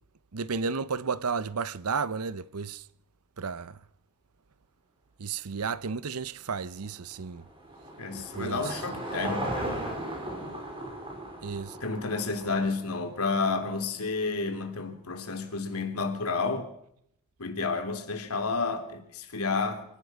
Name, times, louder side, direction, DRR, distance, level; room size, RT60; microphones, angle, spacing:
voice 1, 0.3-2.8 3.4-3.8 5.2-7.4 8.1-8.8 11.4-11.8, right 5 dB, 90° right, 0.8 m, -33 dB
Car passing by / Engine, 6.8-13.3, right 1 dB, 25° right, 5.5 m, -37 dB
voice 2, 8.0-10.1 10.4-10.6 11.8-16.7 17.4-19.8, left 4 dB, 85° left, 3.6 m, -31 dB
25.5 x 17.5 x 6.3 m
head